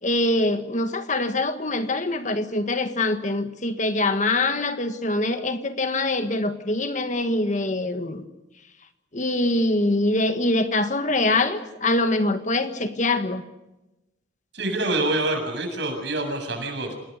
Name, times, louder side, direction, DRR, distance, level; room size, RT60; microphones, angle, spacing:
voice 1, 0.0-8.2 9.1-13.4, left 2 dB, 40° left, 9 dB, 1.5 m, -24 dB
voice 2, 14.5-16.9, right 2 dB, 60° right, 5 dB, 7.5 m, -26 dB
27.5 x 20.0 x 6.7 m, 0.96 s
head